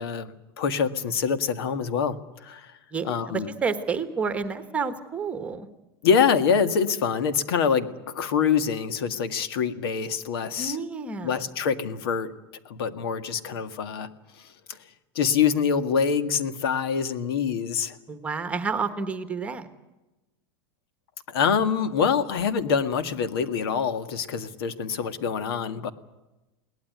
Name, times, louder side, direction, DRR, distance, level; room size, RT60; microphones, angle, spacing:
voice 1, 0.0-2.7 3.0-3.5 6.0-10.8 11.2-12.3 12.7-14.1 14.4-14.8 15.2-18.0 21.3-25.9, left 6 dB, 75° left, 11 dB, 1.9 m, -25 dB
voice 2, 2.9-5.7 10.6-11.3 18.1-19.7, right 5 dB, 10° right, 10 dB, 1.2 m, -30 dB
22.0 x 18.5 x 9.4 m, 1.0 s
supercardioid pair, 175°, 13 cm